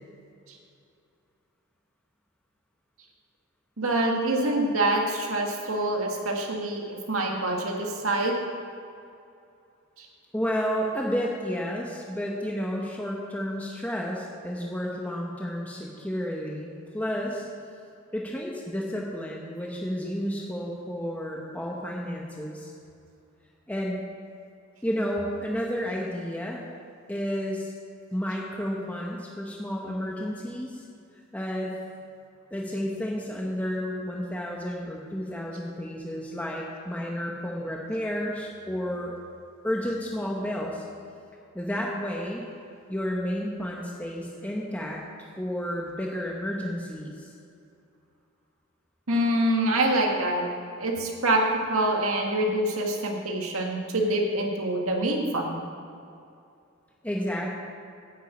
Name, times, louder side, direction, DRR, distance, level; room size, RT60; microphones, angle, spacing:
voice 1, 3.8-8.3 10.0-10.1 49.1-50.4 50.8-51.4 51.7-55.6, right 1 dB, 85° right, 0 dB, 1.9 m, -25 dB
voice 2, 10.3-17.5 18.1-22.7 23.7-24.0 24.8-26.6 27.1-27.7 28.1-30.8 31.3-31.7 32.5-39.1 39.6-40.8 41.5-42.4 42.9-45.0 45.4-47.3 57.0-57.5, equal, 5° left, -3 dB, 1.0 m, -31 dB
10.0 x 7.5 x 8.3 m, 2.5 s
head